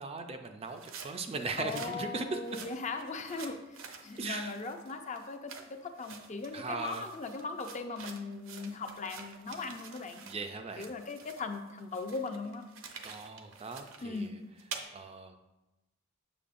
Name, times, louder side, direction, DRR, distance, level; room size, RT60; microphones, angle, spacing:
voice 1, 0.0-2.6 4.2-4.5 6.5-7.1 10.2-10.9 13.0-14.4 14.9-15.3, right 3 dB, 30° right, 6 dB, 0.4 m, -38 dB
sound 1, 0.6-10.5 10.7-14.8, right 5 dB, 70° right, 0.7 m, -48 dB
voice 2, 1.6-3.6 4.0-10.2 10.8-12.6 14.0-14.3, left 3 dB, 35° left, 6 dB, 0.5 m, -39 dB
7.0 x 6.9 x 2.5 m, 1.0 s
head